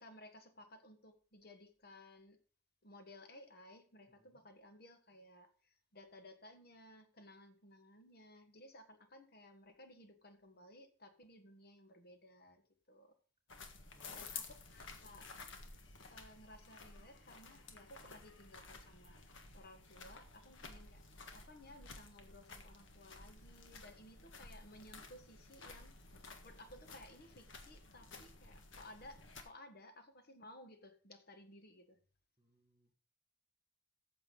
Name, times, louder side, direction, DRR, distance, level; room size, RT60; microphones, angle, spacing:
voice 1, 0.0-2.4 2.8-12.6 12.9-13.2 14.1-15.3 16.1-19.2 19.5-21.0 21.3-25.9 26.4-32.0, left 1 dB, 50° left, 1.5 m, -58 dB
voice 2, 4.1-4.4 13.9-15.3 15.6-15.9 32.4-32.9, equal, 20° right, 3.4 m, -73 dB
sound 1, 13.5-29.4, left 4 dB, 75° left, 1.6 m, -54 dB
14.0 x 6.9 x 3.9 m
head